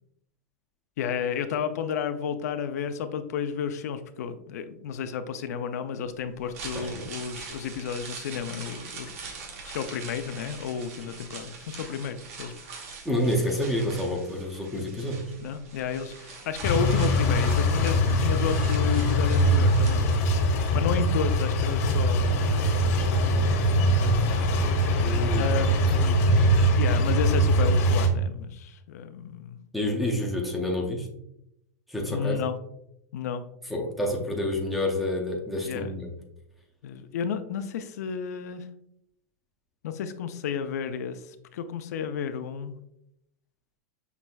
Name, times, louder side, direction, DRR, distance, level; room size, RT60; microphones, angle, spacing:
voice 1, 1.0-9.1 9.6-12.5 15.4-20.1 20.7-23.5 23.8-24.4 25.3-26.2 26.8-29.6 32.1-32.6 33.1-33.4 35.6-35.9 36.8-38.7 39.8-42.8, left 7 dB, 70° left, 9 dB, 0.4 m, -32 dB
sound 1, 6.3-20.5 20.8-20.9, right 4 dB, 60° right, 1.1 m, -43 dB
voice 2, 6.7-7.1 13.0-15.2 20.7-20.9 25.0-25.5 26.0-26.2 29.7-31.1 31.9-32.4 33.7-36.1, left 1 dB, ahead, 1 dB, 0.5 m, -28 dB
sound 2, 16.6-28.1, equal, 45° left, 0.9 m, -22 dB
5.9 x 3.1 x 2.2 m, 0.79 s
supercardioid pair, 165°, 9 cm